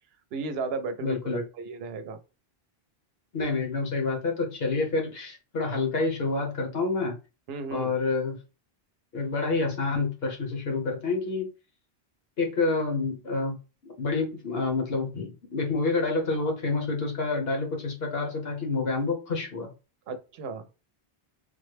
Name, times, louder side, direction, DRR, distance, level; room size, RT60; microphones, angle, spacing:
voice 1, 0.3-2.2 7.5-8.0 20.1-20.7, right 4 dB, 75° right, 0.8 m, -34 dB
voice 2, 1.0-1.4 3.3-7.2 7.7-8.4 9.1-11.5 12.4-13.5 13.8-19.7, left 3 dB, 65° left, 1.3 m, -28 dB
3.6 x 2.1 x 3.2 m
omnidirectional pair, 1.1 m